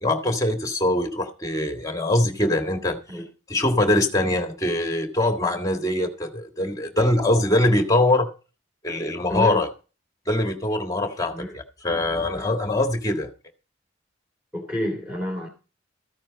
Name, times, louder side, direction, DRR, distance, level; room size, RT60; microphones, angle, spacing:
voice 1, 0.0-3.0 3.5-8.3 8.8-9.7 10.3-13.3, left 1 dB, 20° left, 1.6 m, -23 dB
voice 2, 9.3-9.6 11.3-11.6 12.3-12.5 14.5-15.5, left 1 dB, 5° right, 3.1 m, -29 dB
14.0 x 9.2 x 4.0 m
head